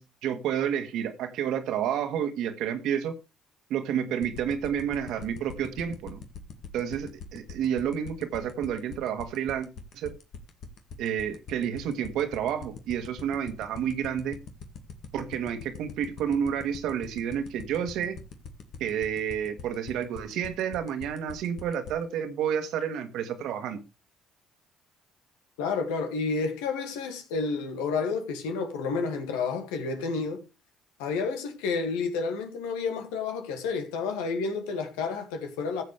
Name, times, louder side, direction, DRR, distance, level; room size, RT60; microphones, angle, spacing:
voice 1, 0.0-3.2 3.7-6.2 6.7-9.7 9.9-10.1 11.0-14.4 15.1-18.2 18.8-23.8, right 9 dB, 75° right, 1.6 m, -30 dB
sound 1, 4.2-21.9, left 8 dB, 65° left, 1.9 m, -41 dB
voice 2, 25.6-30.4 31.0-35.8, left 4 dB, 85° left, 2.1 m, -30 dB
15.0 x 7.4 x 3.3 m
supercardioid pair, 65°, 0 cm